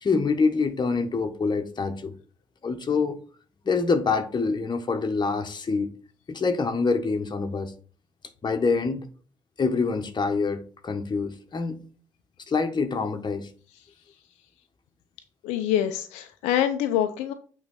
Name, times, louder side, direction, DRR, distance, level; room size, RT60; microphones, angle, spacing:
voice 1, 0.0-2.1 2.6-3.2 3.6-5.9 6.3-7.7 8.4-9.1 9.6-11.8 12.5-13.5, left 4 dB, 40° left, 1.5 m, -25 dB
voice 2, 15.4-17.3, left 11 dB, 80° left, 0.6 m, -25 dB
8.7 x 3.9 x 5.6 m
hypercardioid pair, 45°, 11 cm